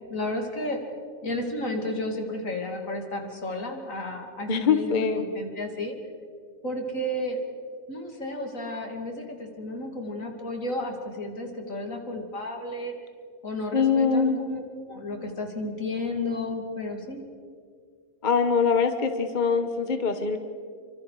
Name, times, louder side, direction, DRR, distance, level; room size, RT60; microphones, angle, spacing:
voice 1, 0.1-0.8 1.2-5.9 6.6-7.4 7.9-12.9 13.4-14.6 14.9-17.2, left 1 dB, 75° left, 3 dB, 3.2 m, -32 dB
voice 2, 4.5-5.2 13.7-14.4 18.2-20.4, left 5 dB, 35° left, 7 dB, 1.3 m, -23 dB
29.0 x 25.0 x 4.8 m, 2.1 s
omnidirectional pair, 1.4 m